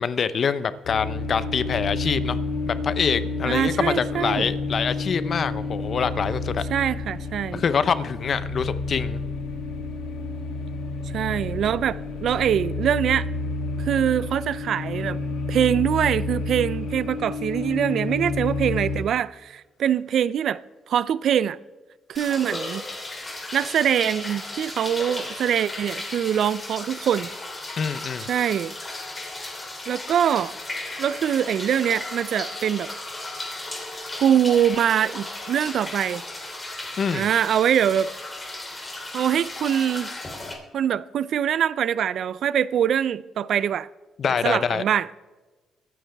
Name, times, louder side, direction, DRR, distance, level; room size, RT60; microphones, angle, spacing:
voice 1, 0.0-2.4 2.7-6.6 7.5-9.2 27.8-28.3 37.0-37.3 44.2-44.8, left 6 dB, 50° left, 0.7 m, -25 dB
sound 1, 0.8-19.0, left 3 dB, 85° left, 2.1 m, -30 dB
voice 2, 3.4-4.5 6.7-7.6 11.1-13.3 13.8-15.2 15.5-20.6 20.9-21.6 22.1-22.8 23.5-27.3 28.3-28.7 29.9-30.5 31.0-32.9 34.2-36.2 37.1-38.1 39.1-40.1 40.7-43.9 44.4-45.1, right 9 dB, 65° right, 0.5 m, -23 dB
sound 2, 22.1-40.5, left 2 dB, 20° left, 3.3 m, -35 dB
23.0 x 9.5 x 3.5 m
cardioid pair, 90°, 0 cm